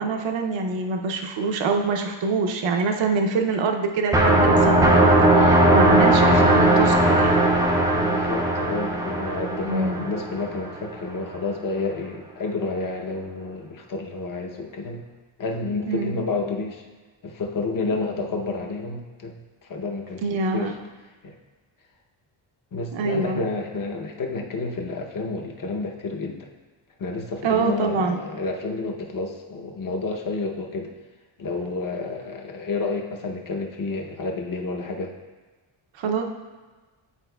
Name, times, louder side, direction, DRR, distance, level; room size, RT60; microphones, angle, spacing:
voice 1, 0.0-7.5 9.7-10.1 15.9-16.1 20.2-20.7 22.9-23.4 27.4-28.2 36.0-36.2, right 4 dB, 65° right, 4 dB, 0.6 m, -25 dB
sound 1, 4.1-10.8, right 1 dB, 10° right, 0.3 m, -18 dB
voice 2, 7.9-15.0 15.4-16.8 17.2-20.8 21.2-21.4 22.7-26.5 27.0-30.9 31.4-35.1, left 3 dB, 40° left, 2 dB, 0.7 m, -30 dB
9.9 x 4.6 x 2.2 m, 1.3 s
wide cardioid pair, 160°, 49 cm